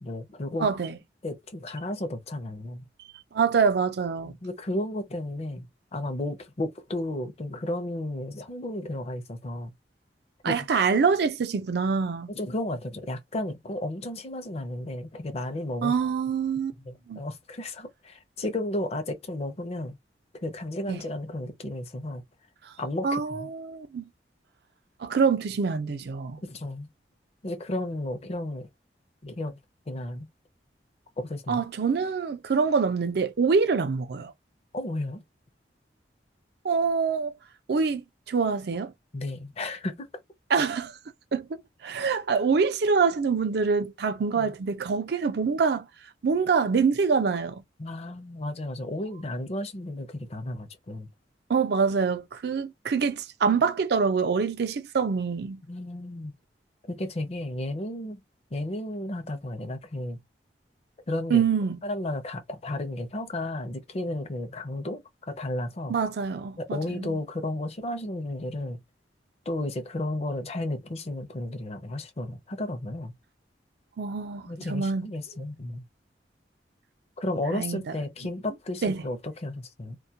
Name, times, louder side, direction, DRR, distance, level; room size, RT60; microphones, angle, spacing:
voice 1, 0.0-0.7 1.2-2.8 4.2-5.7 5.9-9.7 10.5-10.6 12.3-16.0 16.8-20.0 20.3-22.2 22.8-23.5 26.4-26.9 27.4-28.7 29.2-29.6 29.9-30.3 31.2-31.6 34.7-35.2 39.1-40.1 44.4-44.5 47.8-51.1 55.7-56.3 56.9-58.2 58.5-60.2 61.1-61.4 61.8-66.0 66.6-68.8 69.5-73.1 74.5-75.8 77.2-80.0, left 1 dB, 35° left, 0.5 m, -33 dB
voice 2, 0.6-1.0 3.3-4.4 10.4-12.3 15.8-16.7 17.1-17.2 20.9-21.0 22.7-22.8 23.0-24.0 25.0-26.4 31.5-34.3 36.6-37.3 37.7-38.9 40.5-41.0 41.3-41.5 41.8-45.9 46.2-47.6 51.5-55.6 61.3-61.8 65.9-67.2 74.0-75.1 77.5-77.8 78.8-79.0, right 5 dB, 65° right, 0.4 m, -25 dB
2.2 x 2.2 x 2.7 m
head